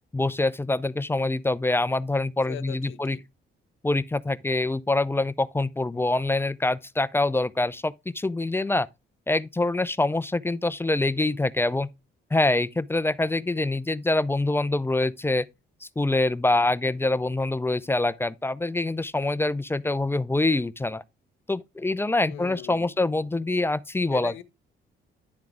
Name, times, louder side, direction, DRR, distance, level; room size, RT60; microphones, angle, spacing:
voice 1, 0.1-3.2 3.8-8.9 9.3-11.9 12.3-15.5 15.8-21.0 21.5-24.3, left 2 dB, 10° left, 0.5 m, -25 dB
voice 2, 2.5-3.2 22.2-23.1 24.1-24.4, left 11 dB, 80° left, 0.9 m, -40 dB
10.5 x 3.8 x 4.7 m
cardioid pair, 90°, 20 cm